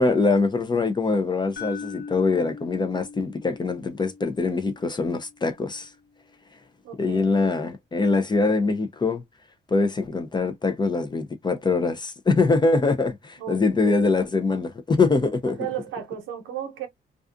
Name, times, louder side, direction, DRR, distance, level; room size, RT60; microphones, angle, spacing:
voice 1, 0.0-5.9 7.0-9.2 9.7-15.6, left 3 dB, 20° left, 0.5 m, -23 dB
sound 1, 1.6-5.6, left 5 dB, 55° left, 0.8 m, -41 dB
voice 2, 6.8-7.5 13.4-14.0 15.5-16.9, right 10 dB, 85° right, 0.8 m, -34 dB
2.4 x 2.3 x 2.5 m
cardioid pair, 90°, 20 cm